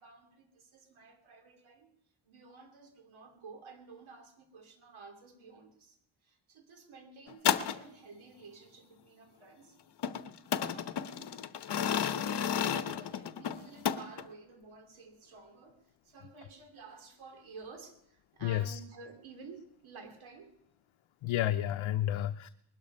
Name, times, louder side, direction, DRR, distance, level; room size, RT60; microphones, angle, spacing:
voice 1, 0.0-1.9 2.2-6.0 6.2-10.2 11.2-11.3 11.8-20.5, right 4 dB, 75° right, 5 dB, 3.0 m, -53 dB
sound 1, 7.3-7.8 10.0-14.2, left 8 dB, 55° left, 0.9 m, -32 dB
voice 2, 18.4-18.8 21.2-22.5, left 12 dB, 70° left, 8 dB, 0.7 m, -31 dB
21.0 x 12.0 x 5.4 m, 0.73 s
cardioid pair, 90°, 49 cm